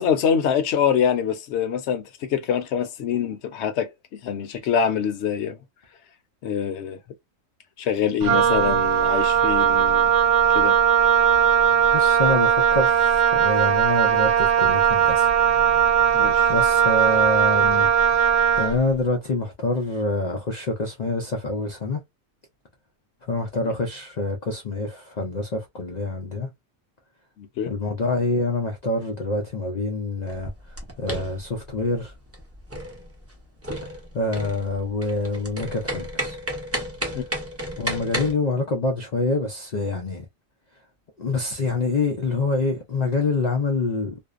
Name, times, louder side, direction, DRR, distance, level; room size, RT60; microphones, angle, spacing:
voice 1, 0.0-5.6 6.4-7.0 7.8-10.1 10.5-10.7 16.1-16.5 27.4-27.7 37.1-37.2, left 7 dB, 65° left, 0.8 m, -25 dB
voice 2, 8.2-8.8 11.9-15.3 16.5-17.9 18.6-22.0 23.3-26.5 27.7-32.1 34.1-36.4 37.8-40.2 41.2-44.2, left 2 dB, 85° left, 0.3 m, -26 dB
Wind instrument woodwind instrument, 8.2-18.8, right 8 dB, 70° right, 0.8 m, -19 dB
sound 1, 30.3-38.3, right 1 dB, 20° right, 0.4 m, -32 dB
2.6 x 2.0 x 2.4 m
omnidirectional pair, 1.4 m